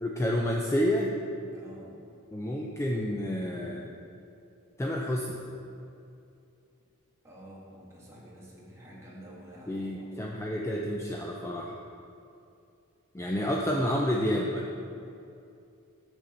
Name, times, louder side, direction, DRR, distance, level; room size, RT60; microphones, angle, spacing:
voice 1, 0.0-1.1 2.3-3.9 4.8-5.4 9.7-11.7 13.1-14.7, equal, 15° left, -1 dB, 0.4 m, -29 dB
voice 2, 1.5-2.0 7.2-10.4, right 1 dB, 15° right, -6 dB, 1.6 m, -49 dB
7.0 x 6.4 x 4.2 m, 2.6 s
head